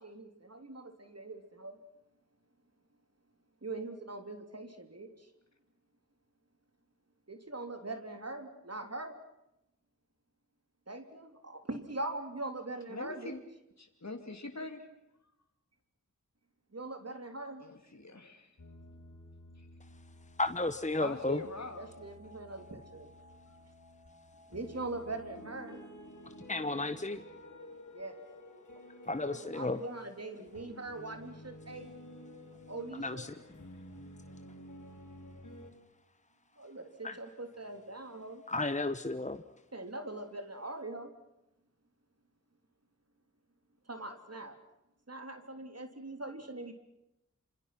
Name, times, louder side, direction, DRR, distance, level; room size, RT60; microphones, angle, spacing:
voice 1, 0.0-1.8 3.6-5.1 7.3-9.2 10.9-13.4 16.7-17.6 21.7-23.1 24.5-25.8 27.9-28.2 29.3-31.9 32.7-33.3 36.6-38.4 39.7-41.1 43.9-44.6 45.1-46.7, right 2 dB, 55° right, 6 dB, 3.4 m, -42 dB
voice 2, 12.9-13.4 13.8-14.9 17.6-18.5 19.6-19.7 21.0-21.9, left 3 dB, 60° left, 4 dB, 2.7 m, -42 dB
sound 1, 18.6-35.7, left 1 dB, 80° left, 4.8 m, -52 dB
voice 3, 20.4-21.4 26.5-27.2 29.0-29.8 32.9-33.3 37.0-37.1 38.5-39.4, left 2 dB, 25° left, 10 dB, 1.1 m, -33 dB
27.0 x 26.5 x 6.0 m, 0.86 s
wide cardioid pair, 45°, 30 cm